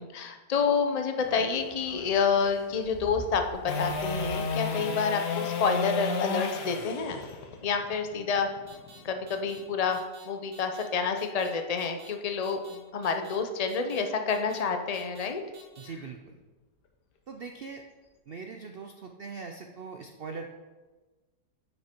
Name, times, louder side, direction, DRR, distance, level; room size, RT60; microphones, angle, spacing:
voice 1, 0.0-7.2 7.6-8.5 9.0-15.4, left 5 dB, 55° left, 6 dB, 0.4 m, -28 dB
sound 1, 1.2-5.0, equal, 10° right, 2.3 m, -46 dB
sound 2, 3.7-9.8 16.3-16.4, left 4 dB, 80° left, 1.6 m, -33 dB
sound 3, 8.7-9.0 9.3-9.6 9.9-10.2 10.5-10.8 11.2-11.5 11.8-12.1 12.4-12.8 13.0-13.4 13.7-14.0 14.3-14.6 14.9-15.3 15.5-15.9, right 3 dB, 45° right, 1.8 m, -52 dB
voice 2, 15.8-16.3 17.3-17.8 18.3-20.5, right 4 dB, 70° right, 4 dB, 0.5 m, -41 dB
9.9 x 6.5 x 4.5 m, 1.3 s
omnidirectional pair, 1.8 m